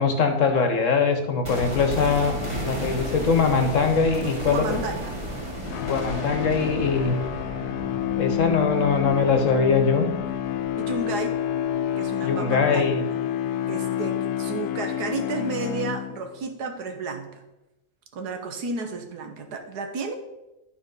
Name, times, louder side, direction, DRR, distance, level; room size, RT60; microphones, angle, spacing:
voice 1, 0.0-2.3 2.6-4.8 5.8-7.2 8.2-10.1 12.2-13.0, left 5 dB, 55° left, 5 dB, 1.4 m, -22 dB
sound 1, 1.4-11.4 11.7-11.8, equal, 20° right, 1.8 m, -34 dB
voice 2, 4.5-5.1 10.8-11.3 12.0-13.2 13.7-17.4 18.1-20.2, right 3 dB, 90° right, 5 dB, 1.7 m, -32 dB
sound 2, 5.7-16.4, left 11 dB, 80° left, 1.1 m, -29 dB
11.5 x 4.6 x 5.4 m, 0.97 s
omnidirectional pair, 1.6 m